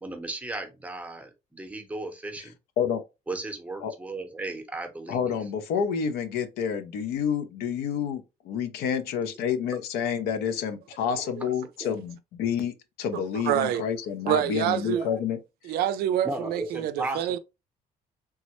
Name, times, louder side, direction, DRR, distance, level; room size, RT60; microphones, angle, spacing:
voice 1, 0.0-2.5 3.3-5.3 11.8-11.9 14.9-15.2 16.2-17.4, right 2 dB, 10° right, 0.7 m, -35 dB
voice 2, 5.1-15.4 15.6-15.8, left 7 dB, 85° left, 0.5 m, -29 dB
voice 3, 13.1-13.8 14.3-15.1 15.6-17.4, right 11 dB, 80° right, 0.4 m, -27 dB
3.5 x 2.0 x 2.9 m
cardioid pair, 130°, 16 cm